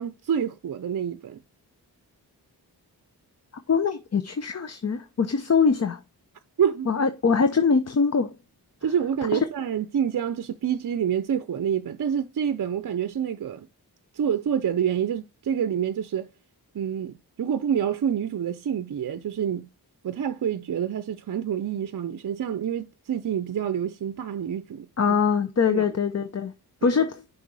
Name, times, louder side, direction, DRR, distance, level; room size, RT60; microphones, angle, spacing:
voice 1, 0.0-1.4 6.6-6.9 8.8-13.7 14.1-16.3 16.7-19.7 20.0-24.9 25.7-25.8 26.8-26.9, right 8 dB, 55° right, 0.6 m, -27 dB
voice 2, 3.7-6.0 6.9-8.3 9.3-9.4 25.0-26.5 26.8-27.2, left 5 dB, 40° left, 0.7 m, -23 dB
6.6 x 4.3 x 4.7 m
cardioid pair, 65°, 40 cm